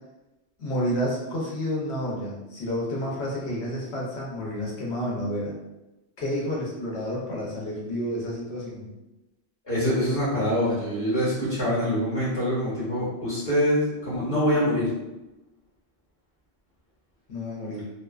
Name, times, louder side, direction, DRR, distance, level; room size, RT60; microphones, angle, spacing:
voice 1, 0.6-5.5 6.2-8.9 17.3-17.9, equal, 75° left, -4 dB, 1.0 m, -30 dB
voice 2, 9.6-14.9, equal, 35° left, -10 dB, 1.0 m, -25 dB
2.4 x 2.2 x 2.3 m, 1.0 s
omnidirectional pair, 1.1 m